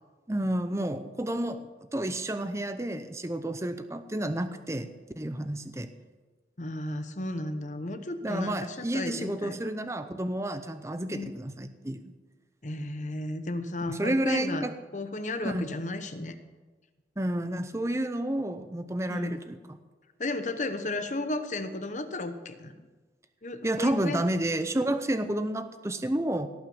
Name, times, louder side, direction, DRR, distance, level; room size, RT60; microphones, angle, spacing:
voice 1, 0.3-1.7 1.9-4.9 5.2-5.9 8.2-12.1 13.9-14.7 15.4-15.7 17.2-19.6 23.6-26.5, right 1 dB, 15° right, 10 dB, 0.6 m, -30 dB
voice 2, 6.6-9.7 11.1-11.3 12.6-14.7 14.9-16.4 19.1-19.4 20.2-22.7 23.4-24.2, left 2 dB, 40° left, 9 dB, 1.0 m, -34 dB
18.0 x 6.1 x 7.1 m, 1.3 s
head